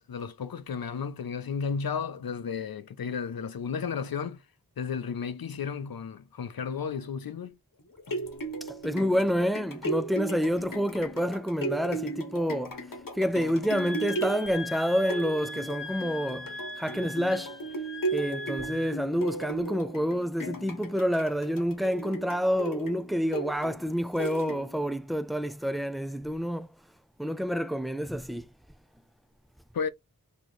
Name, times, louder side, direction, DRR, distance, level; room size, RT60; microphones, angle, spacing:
voice 1, 0.0-4.4 4.8-7.6 29.7-29.9, left 6 dB, 85° left, 0.5 m, -33 dB
sound 1, 7.8-24.9 25.4-25.5, right 2 dB, 70° left, 1.0 m, -36 dB
voice 2, 8.8-12.8 13.2-17.6 18.1-26.7 27.2-28.5, equal, ahead, 0.3 m, -28 dB
Wind instrument woodwind instrument, 13.7-19.0, left 2 dB, 35° left, 1.0 m, -40 dB
3.1 x 2.9 x 4.0 m
wide cardioid pair, 55°, 35 cm